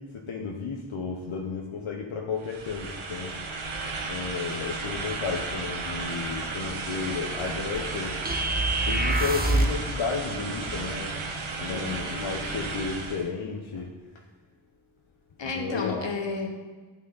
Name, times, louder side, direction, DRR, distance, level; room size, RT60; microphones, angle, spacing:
voice 1, 0.0-3.4 4.0-8.2 8.9-11.2 11.6-13.9 15.4-16.1, left 5 dB, 85° left, 0 dB, 1.0 m, -33 dB
sound 1, 2.4-13.3, right 3 dB, 90° right, 1.2 m, -34 dB
sound 2, 8.3-9.9, right 2 dB, 20° right, 1.0 m, -25 dB
voice 2, 11.7-12.1 15.4-16.5, left 4 dB, 65° left, 3 dB, 1.4 m, -32 dB
11.5 x 6.3 x 4.1 m, 1.4 s
wide cardioid pair, 65°, 47 cm